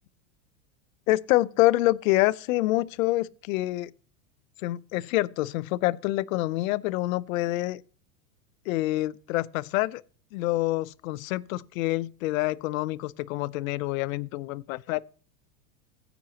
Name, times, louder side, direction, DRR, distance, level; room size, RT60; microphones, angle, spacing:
voice 1, 1.1-3.9 4.6-7.8 8.7-10.0 10.3-15.0, left 18 dB, 70° left, 0.7 m, -26 dB
15.5 x 6.1 x 2.9 m
supercardioid pair, 115°, 43 cm